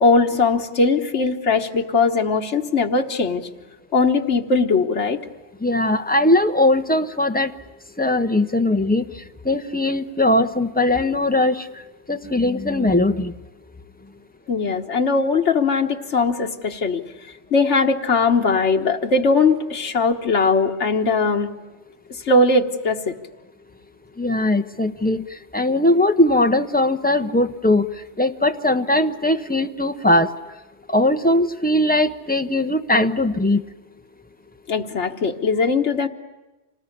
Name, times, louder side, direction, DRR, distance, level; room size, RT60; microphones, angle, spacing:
voice 1, 0.0-3.5 3.9-5.2 14.5-17.0 17.5-21.5 22.1-23.2 34.7-36.1, left 3 dB, 80° left, 3 dB, 1.7 m, -20 dB
voice 2, 5.6-7.5 8.0-9.1 9.4-11.7 12.1-13.3 24.2-25.2 25.5-27.9 28.2-30.3 30.9-33.6, left 1 dB, 10° left, 7 dB, 0.9 m, -19 dB
26.5 x 19.5 x 10.0 m, 1.1 s
omnidirectional pair, 1.2 m